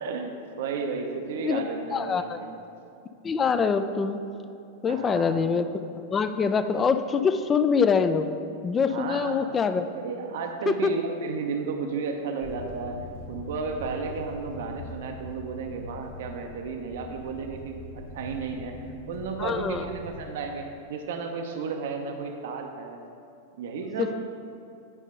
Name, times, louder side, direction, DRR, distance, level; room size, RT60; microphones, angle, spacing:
voice 1, 0.0-2.5 4.9-5.4 8.9-9.4 9.9-13.0 13.3-17.8 18.1-18.7 19.1-23.0 23.6-24.2, right 5 dB, 55° right, 4 dB, 0.6 m, -33 dB
voice 2, 1.9-2.4 3.2-4.2 4.8-5.7 6.1-8.3 8.6-9.9 10.7-10.9 19.4-19.8 24.0-24.2, left 5 dB, 20° left, 10 dB, 0.4 m, -24 dB
sound 1, 12.4-20.3, left 1 dB, 65° left, 1.2 m, -42 dB
9.7 x 5.3 x 3.8 m, 2.6 s
figure-of-eight pair, 90°, 0 cm